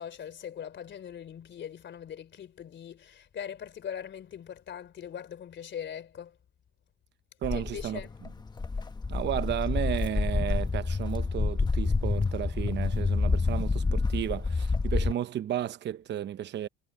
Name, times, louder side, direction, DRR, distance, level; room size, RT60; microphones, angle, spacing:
voice 1, 0.0-6.4 7.5-8.1, left 9 dB, 35° left, 3.4 m, -41 dB
Walk footsteps, 7.4-15.1, left 4 dB, 15° left, 1.1 m, -28 dB
voice 2, 7.4-8.0 9.1-16.7, right 11 dB, 35° right, 0.9 m, -33 dB
cardioid pair, 135°, 31 cm